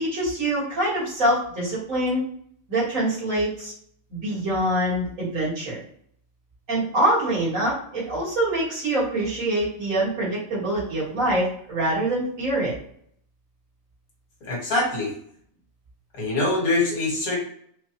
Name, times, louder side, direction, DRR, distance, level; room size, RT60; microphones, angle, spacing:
voice 1, 0.0-2.2 2.7-3.7 4.1-5.8 6.7-12.7, right 1 dB, 65° right, -7 dB, 2.3 m, -24 dB
voice 2, 14.4-15.1 16.1-17.4, left 2 dB, 80° left, -3 dB, 2.1 m, -24 dB
4.9 x 2.4 x 3.0 m, 0.65 s
omnidirectional pair, 1.5 m